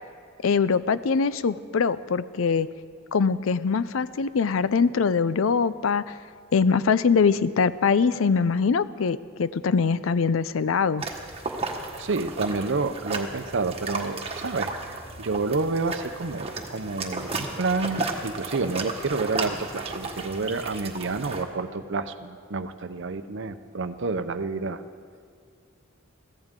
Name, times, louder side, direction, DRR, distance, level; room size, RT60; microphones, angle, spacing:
voice 1, 0.4-2.7 3.1-6.1 6.5-11.0, left 5 dB, 75° left, 16 dB, 0.5 m, -23 dB
sound 1, 11.0-21.4, right 3 dB, 30° right, 1.5 m, -34 dB
voice 2, 12.0-24.8, right 3 dB, 65° right, 10 dB, 0.7 m, -29 dB
23.0 x 15.5 x 3.7 m, 2.2 s
head